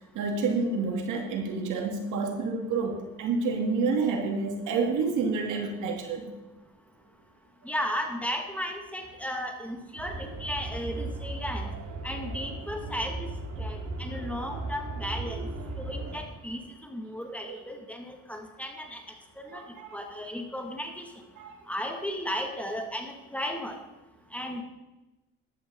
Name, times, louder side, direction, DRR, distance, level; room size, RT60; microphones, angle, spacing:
voice 1, 0.1-6.3 17.5-17.6 19.5-20.1 21.4-21.6, right 4 dB, 90° right, 3 dB, 2.3 m, -29 dB
voice 2, 7.6-11.7 12.0-13.3 13.6-15.5 15.8-19.0 19.4-19.6 19.9-21.1 21.7-23.8 24.3-24.6, equal, 5° left, 3 dB, 2.3 m, -35 dB
sound 1, 10.0-16.2, right 2 dB, 70° right, 2.7 m, -36 dB
14.0 x 11.5 x 4.0 m, 1.1 s
cardioid pair, 90°, 30 cm